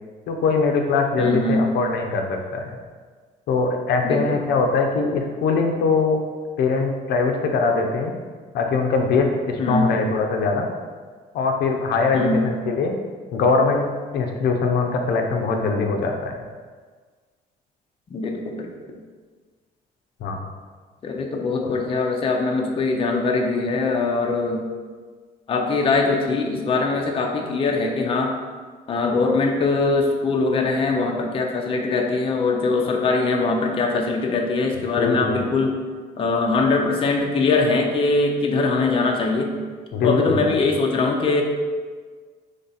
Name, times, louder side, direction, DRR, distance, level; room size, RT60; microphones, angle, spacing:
voice 1, 0.3-2.7 3.5-6.2 6.6-8.1 8.5-10.7 11.3-12.9 13.3-16.4 20.2-20.4 21.6-21.7 35.0-35.4 39.9-40.5, left 4 dB, 70° left, 3 dB, 0.6 m, -22 dB
voice 2, 1.2-1.6 4.0-4.4 9.6-9.9 12.1-12.5 18.1-18.7 21.0-24.6 25.5-28.3 28.9-35.7 36.2-39.5 40.0-41.4, left 3 dB, 35° left, 1 dB, 0.6 m, -22 dB
3.8 x 3.3 x 4.1 m, 1.5 s
cardioid pair, 110°, 17 cm